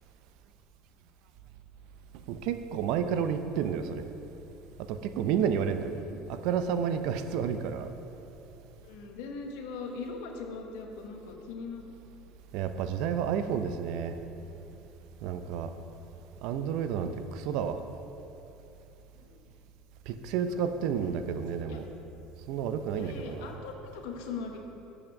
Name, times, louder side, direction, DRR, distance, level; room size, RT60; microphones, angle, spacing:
voice 1, 2.3-4.1 4.8-5.9 6.3-7.9 12.5-14.2 15.2-15.7 16.4-17.8 20.1-21.9 22.5-23.5, right 7 dB, 70° right, 9 dB, 0.5 m, -30 dB
voice 2, 5.7-6.2 8.8-11.9 17.0-17.2 19.2-19.4 21.0-21.1 21.7-21.8 23.0-24.6, left 4 dB, 80° left, 2 dB, 1.0 m, -41 dB
7.3 x 4.9 x 6.4 m, 2.9 s
supercardioid pair, 105°, 0 cm